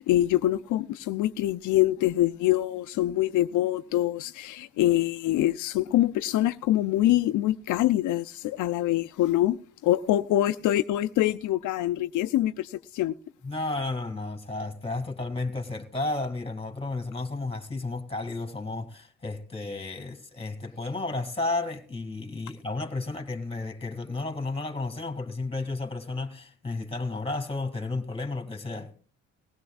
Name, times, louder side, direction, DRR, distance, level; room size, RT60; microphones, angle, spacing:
voice 1, 0.0-13.1, left 14 dB, 80° left, 0.5 m, -25 dB
voice 2, 13.4-28.9, left 2 dB, 20° left, 2.1 m, -32 dB
20.0 x 16.5 x 2.4 m
cardioid pair, 90°, 30 cm